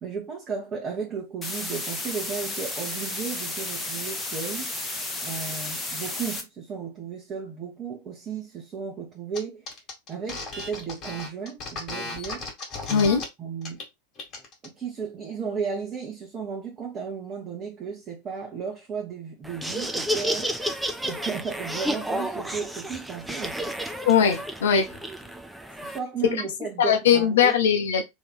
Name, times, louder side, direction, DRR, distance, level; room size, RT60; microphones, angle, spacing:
voice 1, 0.0-4.7 5.2-9.7 10.1-12.4 13.4-13.8 14.6-20.5 21.0-23.7 25.8-27.5, right 6 dB, 25° right, 1.3 m, -34 dB
sound 1, 1.4-6.4, left 2 dB, 10° left, 1.0 m, -32 dB
sound 2, 9.3-9.4 9.7-13.2 13.6-13.8 14.2-14.7, left 3 dB, 30° left, 1.8 m, -35 dB
voice 2, 12.9-13.2 24.1-24.9 26.8-28.0, left 7 dB, 60° left, 0.7 m, -20 dB
Laughter, 19.4-26.0, right 1 dB, 5° right, 0.5 m, -31 dB
3.1 x 3.0 x 4.1 m
figure-of-eight pair, 90°, 0 cm